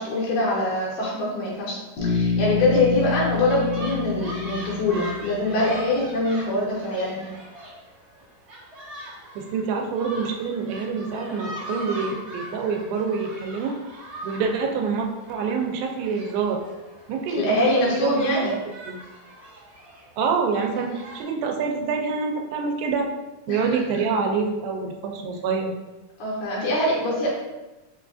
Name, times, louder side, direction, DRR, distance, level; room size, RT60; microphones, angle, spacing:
voice 1, 0.0-7.3 17.3-18.5 23.5-23.8 26.2-27.3, left 1 dB, 75° left, -5 dB, 2.4 m, -24 dB
Bass guitar, 2.0-6.0, left 5 dB, 60° left, 2.1 m, -27 dB
sound 1, 3.1-21.2, right 1 dB, 55° right, 1.0 m, -41 dB
voice 2, 9.4-13.7 14.2-16.6 17.1-18.6 18.9-19.0 20.2-23.1 23.5-25.8, right 5 dB, 85° right, 2 dB, 2.3 m, -26 dB
5.5 x 2.3 x 2.5 m, 1.1 s
omnidirectional pair, 4.0 m